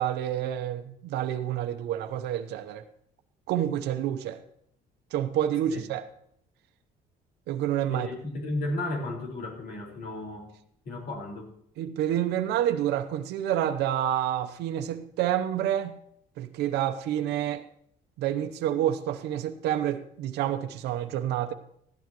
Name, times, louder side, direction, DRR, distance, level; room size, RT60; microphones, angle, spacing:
voice 1, 0.0-2.8 3.5-4.4 5.1-6.0 7.5-8.1 11.8-16.0 16.4-17.6 18.2-21.5, right 11 dB, 80° right, 6 dB, 0.8 m, -28 dB
voice 2, 7.9-10.5 10.8-11.5, left 2 dB, 60° left, 1 dB, 4.8 m, -34 dB
15.0 x 11.5 x 3.1 m, 0.70 s
cardioid pair, 110°, 17 cm